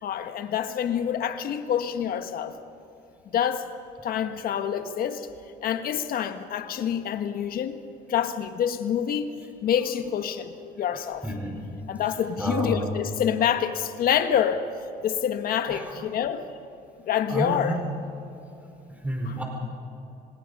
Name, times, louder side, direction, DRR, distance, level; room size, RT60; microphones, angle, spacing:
voice 1, 0.0-2.5 3.3-3.7 4.0-5.3 5.6-7.8 8.1-9.3 9.6-11.2 11.9-14.7 15.0-16.4 17.0-17.8 19.3-19.4, left 9 dB, 60° left, 8 dB, 1.5 m, -27 dB
voice 2, 11.2-11.5 12.4-12.8 15.7-15.9 17.3-17.7 18.9-19.4, right 1 dB, 10° right, 1 dB, 4.6 m, -29 dB
26.5 x 20.0 x 5.4 m, 2.9 s
cardioid pair, 110°, 17 cm